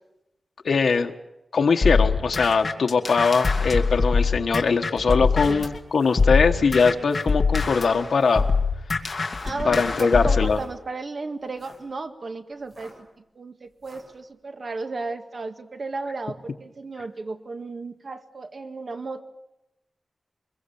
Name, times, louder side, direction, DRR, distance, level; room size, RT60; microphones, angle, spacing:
voice 1, 0.6-1.1 1.5-8.5 9.6-10.6, left 5 dB, 80° left, 4 dB, 1.4 m, -21 dB
sound 1, 1.8-5.8 6.2-10.5, left 4 dB, 45° left, 2.2 m, -24 dB
sound 2, 5.9-6.2 6.9-7.4 8.1-8.4 9.3-9.6 10.3-10.7 11.4-11.9 12.6-13.1 13.8-14.1, right 1 dB, 35° right, 7.1 m, -49 dB
voice 2, 9.4-12.9 13.3-19.2, right 3 dB, 55° right, 7 dB, 1.8 m, -34 dB
24.0 x 22.5 x 7.1 m, 0.92 s
wide cardioid pair, 130°, 0 cm